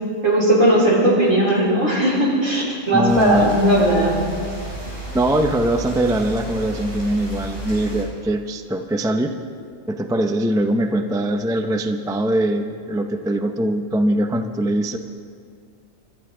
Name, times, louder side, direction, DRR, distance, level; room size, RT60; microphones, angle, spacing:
voice 1, 0.2-4.2, right 1 dB, 75° right, -4 dB, 4.3 m, -17 dB
voice 2, 2.9-3.7 5.1-9.4 9.9-15.0, right 1 dB, 5° right, 6 dB, 0.4 m, -22 dB
sound 1, 3.1-8.1, right 1 dB, 45° right, 3.7 m, -32 dB
28.0 x 13.0 x 3.8 m, 2.2 s
omnidirectional pair, 1.3 m